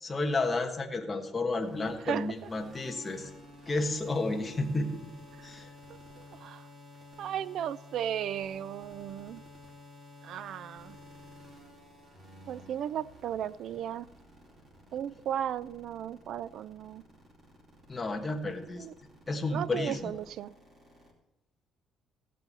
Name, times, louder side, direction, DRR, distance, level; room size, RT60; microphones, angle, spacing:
voice 1, 0.0-3.3 3.7-5.1 5.4-5.7 17.9-18.8 19.3-20.1, left 2 dB, 15° left, 3 dB, 1.3 m, -31 dB
sound 1, 1.6-21.1, left 1 dB, 30° right, 2.8 m, -52 dB
voice 2, 2.0-2.5 5.4-5.5 5.9-6.7 7.2-9.4 10.2-11.0 12.5-14.1 14.9-17.0 18.8-18.9 19.5-20.5, right 10 dB, 55° right, 19 dB, 0.4 m, -36 dB
16.0 x 8.2 x 4.1 m, 0.85 s
cardioid pair, 155°, 0 cm